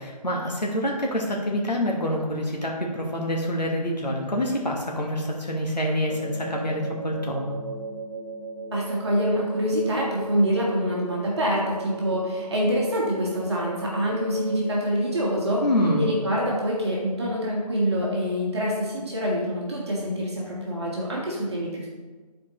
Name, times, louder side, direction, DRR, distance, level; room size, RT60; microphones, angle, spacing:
voice 1, 0.0-7.5 15.6-16.1, left 1 dB, 85° left, -1 dB, 1.4 m, -26 dB
sound 1, 6.1-16.4, right 2 dB, 10° right, 0.6 m, -37 dB
voice 2, 8.7-15.6 16.0-21.9, equal, 40° right, -4 dB, 1.7 m, -26 dB
10.0 x 4.5 x 3.0 m, 1.4 s
figure-of-eight pair, 155°, 21 cm